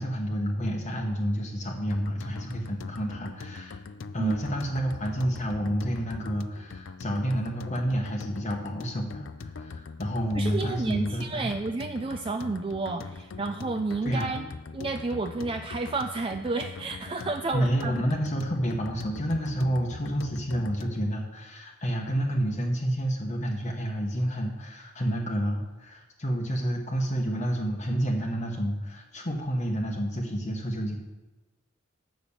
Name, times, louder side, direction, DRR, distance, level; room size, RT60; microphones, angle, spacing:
voice 1, 0.0-3.8 4.1-11.5 14.0-14.3 17.5-31.0, equal, 35° left, -1 dB, 1.0 m, -29 dB
sound 1, 1.9-21.1, left 4 dB, 70° left, 0.5 m, -42 dB
voice 2, 10.3-14.5 14.7-18.0, right 3 dB, 25° right, 6 dB, 0.4 m, -31 dB
8.6 x 5.8 x 7.0 m, 1.1 s
head